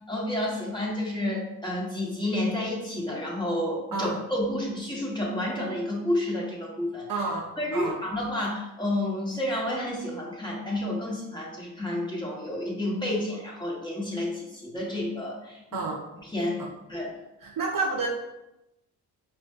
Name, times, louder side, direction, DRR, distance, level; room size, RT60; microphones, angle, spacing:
voice 1, 0.1-7.1 7.6-15.8 16.2-16.6 16.9-17.1, left 1 dB, 10° left, -4 dB, 1.5 m, -30 dB
voice 2, 7.1-8.0 15.7-16.0 16.6-16.7 17.4-18.1, right 3 dB, 55° right, 0 dB, 0.8 m, -30 dB
4.8 x 2.5 x 2.7 m, 0.93 s
supercardioid pair, 50°, 41 cm